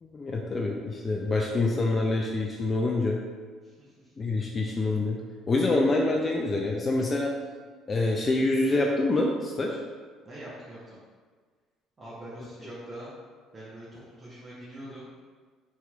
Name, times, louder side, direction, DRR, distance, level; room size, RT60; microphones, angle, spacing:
voice 1, 0.0-3.2 4.2-5.2 5.5-7.3 7.9-9.8, left 2 dB, 35° left, -1 dB, 0.3 m, -26 dB
voice 2, 3.6-4.1 10.3-11.0 12.0-13.1 13.5-15.1, right 1 dB, 35° right, -9 dB, 0.8 m, -43 dB
3.0 x 2.8 x 2.4 m, 1.5 s
hypercardioid pair, 60°, 0 cm